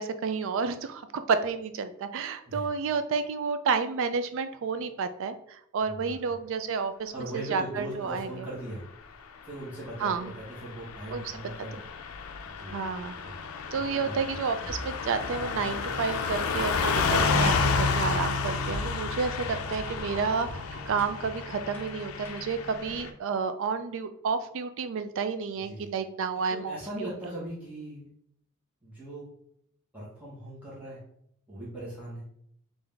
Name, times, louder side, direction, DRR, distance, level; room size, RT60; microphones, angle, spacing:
voice 1, 0.0-8.5 10.0-10.3 11.1-11.2 12.7-13.2 13.7-27.1, right 5 dB, 65° right, 10 dB, 0.4 m, -30 dB
voice 2, 5.8-6.4 7.1-8.8 9.4-11.8 12.4-13.3 13.9-14.4 22.9-23.1 25.6-25.9 26.5-28.1 28.8-29.2 29.9-31.0 31.5-32.2, right 1 dB, 5° right, -9 dB, 1.2 m, -40 dB
Car passing by / Truck, 10.1-23.1, left 4 dB, 90° left, 0.4 m, -31 dB
sound 1, 14.7-22.8, equal, 10° left, 0.9 m, -43 dB
3.7 x 2.6 x 3.4 m, 0.70 s
head